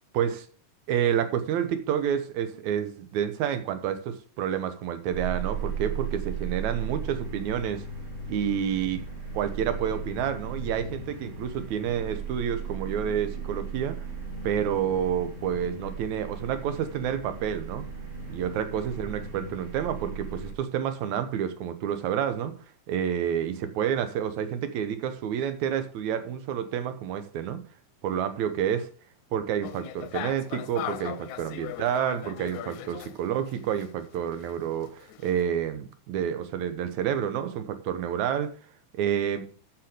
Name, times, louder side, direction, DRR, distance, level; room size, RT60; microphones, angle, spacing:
voice 1, 0.1-0.5 0.9-7.8 8.3-9.0 9.3-14.0 14.4-17.9 18.3-22.5 22.9-27.6 28.0-28.9 29.3-38.5 38.9-39.4, right 9 dB, 75° right, 10 dB, 2.4 m, -29 dB
sound 1, 5.1-20.5, right 5 dB, 40° right, 5.5 m, -36 dB
sound 2, 29.6-33.9 34.1-35.4, left 13 dB, 85° left, 2.1 m, -39 dB
13.0 x 5.9 x 5.1 m, 0.41 s
omnidirectional pair, 3.4 m